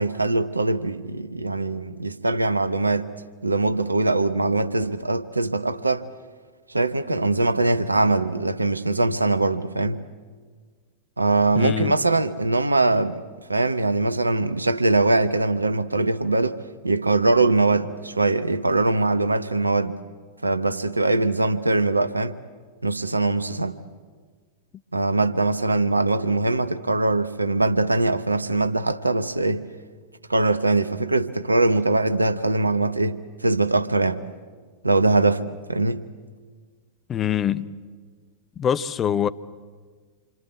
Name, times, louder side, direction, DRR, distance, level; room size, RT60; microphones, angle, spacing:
voice 1, 0.0-3.1 3.4-6.1 6.7-10.0 11.2-13.2 13.5-20.0 20.4-22.4 22.8-23.8 24.9-29.7 30.3-34.3 34.8-36.1, right 2 dB, 80° right, 1.0 m, -22 dB
voice 2, 11.5-11.9 37.1-37.8 38.6-39.3, left 9 dB, 25° left, 0.8 m, -24 dB
27.5 x 24.5 x 8.3 m
figure-of-eight pair, 90°, 0 cm